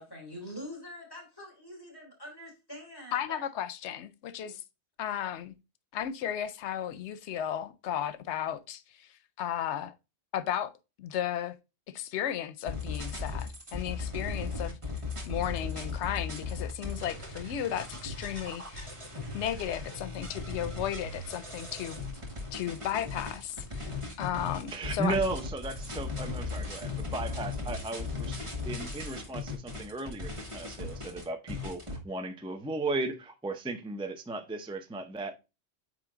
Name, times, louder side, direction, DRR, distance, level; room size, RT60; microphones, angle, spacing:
voice 1, 0.0-3.5 4.4-4.5, equal, 20° left, 3.0 m, -45 dB
voice 2, 3.1-4.6 5.0-5.5 5.9-9.9 10.3-10.7 11.0-11.6 11.9-14.8 15.3-18.9 19.3-22.0 22.5-25.3, left 10 dB, 90° left, 0.9 m, -34 dB
sound 1, 12.7-32.0, left 3 dB, 30° right, 1.7 m, -37 dB
voice 3, 24.7-28.4 28.7-35.3, right 3 dB, 5° right, 0.5 m, -35 dB
8.6 x 3.2 x 3.7 m
omnidirectional pair, 1.1 m